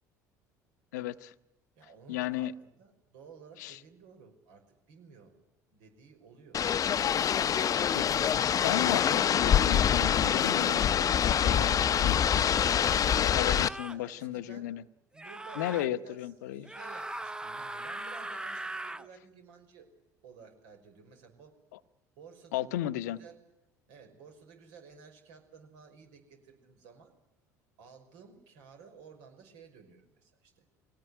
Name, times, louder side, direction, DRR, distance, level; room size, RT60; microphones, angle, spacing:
voice 1, 0.9-1.3 2.1-2.5 3.6-3.8 7.9-12.4 12.7-14.8 15.6-16.7 22.5-23.2, left 13 dB, 75° left, 13 dB, 0.9 m, -35 dB
voice 2, 1.8-5.4 5.7-6.6 13.8-14.7 15.1-19.9 20.2-21.5 22.2-22.7 23.0-23.4 23.9-27.1 27.8-30.6, right 5 dB, 70° right, 5 dB, 5.8 m, -54 dB
sound 1, 6.5-13.7, left 9 dB, 40° left, 0.8 m, -25 dB
sound 2, 11.4-11.9 13.3-14.0 15.2-15.9 16.6-19.1, right 2 dB, 10° right, 0.8 m, -40 dB
23.5 x 18.0 x 9.9 m, 0.91 s
hypercardioid pair, 70°, 9 cm